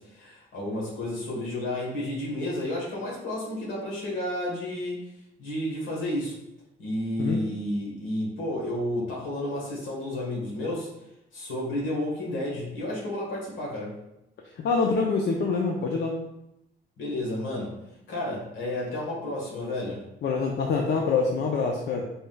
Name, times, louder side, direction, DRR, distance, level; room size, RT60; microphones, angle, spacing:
voice 1, 0.0-5.0 5.4-6.4 6.8-10.9 11.3-13.9 17.0-17.7 18.1-20.0, left 1 dB, 90° left, -4 dB, 1.3 m, -31 dB
voice 2, 14.5-16.2 20.2-22.0, left 4 dB, 60° left, 1 dB, 0.5 m, -25 dB
4.0 x 3.6 x 2.3 m, 0.85 s
cardioid pair, 90°, 20 cm